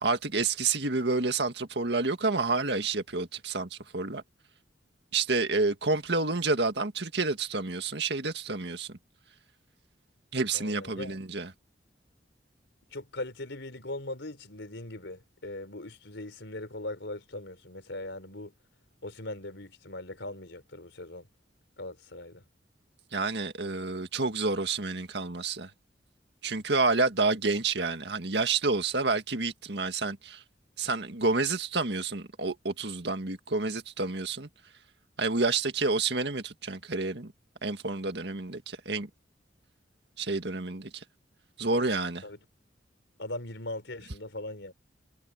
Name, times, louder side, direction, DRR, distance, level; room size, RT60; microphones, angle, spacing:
voice 1, 0.0-4.2 5.1-9.0 10.3-11.5 23.1-25.7 26.4-30.4 30.8-34.5 35.2-37.3 37.6-39.1 40.2-41.0 41.6-42.2, right 3 dB, 65° right, 2.0 m, -29 dB
voice 2, 10.5-11.2 12.9-18.5 19.0-21.3 21.8-22.4 42.2-42.4 43.2-44.7, left 1 dB, 80° left, 4.4 m, -40 dB
head